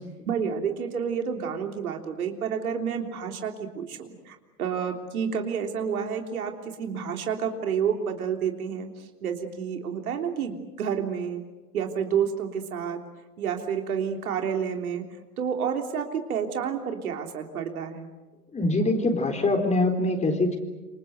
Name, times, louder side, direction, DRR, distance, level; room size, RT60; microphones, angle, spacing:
voice 1, 0.3-6.5 6.8-11.4 11.7-13.0 13.4-15.1 15.4-18.1, right 7 dB, 70° right, 4 dB, 3.5 m, -29 dB
voice 2, 18.5-20.6, left 2 dB, 15° left, 5 dB, 4.1 m, -23 dB
28.0 x 26.0 x 7.9 m, 1.1 s
figure-of-eight pair, 95°, 46 cm